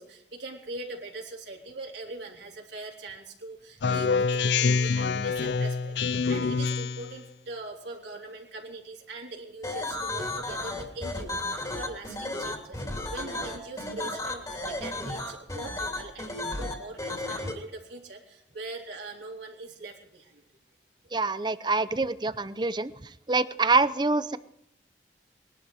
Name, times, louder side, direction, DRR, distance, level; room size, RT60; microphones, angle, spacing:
voice 1, 0.0-12.8 13.1-20.4, right 2 dB, 75° right, 0 dB, 3.7 m, -42 dB
Speech synthesizer, 3.8-7.1, left 5 dB, 70° left, 0.5 m, -26 dB
sound 1, 9.6-17.5, left 2 dB, 20° left, 2.8 m, -33 dB
voice 2, 21.1-22.9 23.3-24.4, right 3 dB, 25° right, 14 dB, 0.6 m, -25 dB
21.0 x 12.0 x 4.9 m, 0.77 s
head